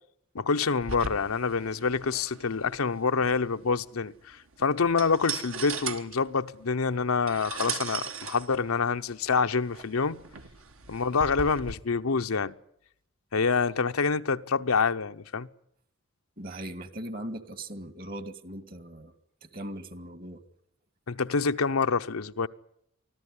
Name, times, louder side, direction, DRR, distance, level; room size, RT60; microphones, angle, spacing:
voice 1, 0.3-10.2 10.9-12.5 13.3-15.5 21.1-22.5, left 5 dB, 90° left, 0.8 m, -27 dB
sound 1, 0.8-11.7, right 6 dB, 70° right, 1.5 m, -39 dB
voice 2, 16.4-19.1 19.4-20.4, right 1 dB, 45° right, 1.9 m, -39 dB
24.5 x 14.5 x 9.8 m
head